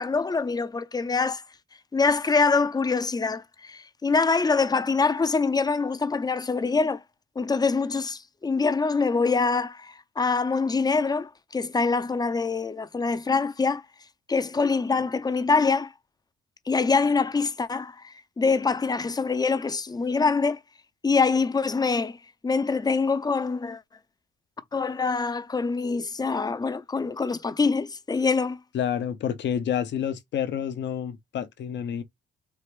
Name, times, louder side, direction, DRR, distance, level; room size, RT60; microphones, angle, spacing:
voice 1, 0.0-1.4 1.9-7.0 7.4-13.8 14.3-15.9 16.7-20.6 21.0-22.2 22.4-23.8 24.7-28.6, left 4 dB, 20° left, 0.5 m, -24 dB
voice 2, 28.7-32.0, left 9 dB, 65° left, 0.7 m, -29 dB
4.5 x 2.5 x 3.3 m
cardioid pair, 90°, 20 cm